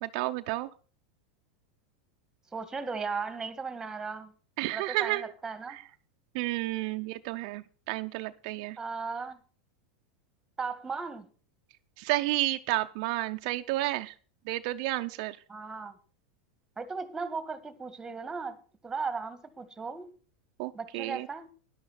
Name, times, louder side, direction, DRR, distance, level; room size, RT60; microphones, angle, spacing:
voice 1, 0.0-0.7 4.6-5.3 5.7-5.8 6.3-8.8 12.0-14.1 14.5-15.4 20.6-21.3, right 18 dB, 60° right, 0.6 m, -31 dB
voice 2, 2.5-4.3 4.7-5.8 8.8-9.4 10.6-11.3 15.5-15.9 16.8-18.6 18.8-20.1 20.7-21.5, right 4 dB, 10° right, 1.8 m, -36 dB
13.0 x 11.0 x 4.2 m
supercardioid pair, 130°, 4 cm